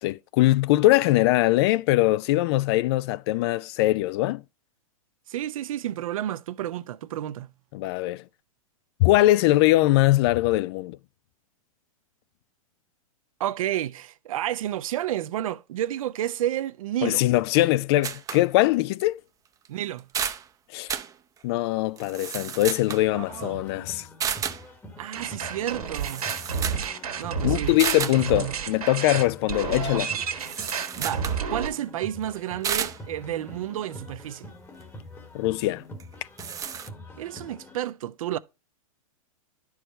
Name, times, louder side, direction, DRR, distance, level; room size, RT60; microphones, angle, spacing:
voice 1, 0.0-4.4 7.7-8.2 9.0-11.0 17.0-19.2 20.7-20.9 21.4-24.1 27.4-30.2 35.3-35.8, left 17 dB, 45° left, 0.4 m, -22 dB
voice 2, 5.3-7.5 13.4-17.2 19.7-20.1 23.1-23.7 25.0-26.3 27.1-28.5 30.7-34.5 37.2-38.4, right 12 dB, 65° right, 0.6 m, -31 dB
sound 1, 18.0-18.5 19.0-19.1 19.7-19.8 20.0-20.5 20.9-21.1 22.0-23.1 24.2-24.6 25.7-25.8 25.9-26.9 27.2-27.3 27.8-28.2 30.4-31.4 32.6-33.0 36.0-36.1 36.4-36.9, right 8 dB, 20° right, 0.6 m, -31 dB
sound 2, 23.1-37.8, left 1 dB, 10° left, 1.1 m, -45 dB
sound 3, 25.1-31.7, right 6 dB, 85° right, 1.7 m, -30 dB
11.0 x 4.8 x 4.4 m
hypercardioid pair, 115°, 18 cm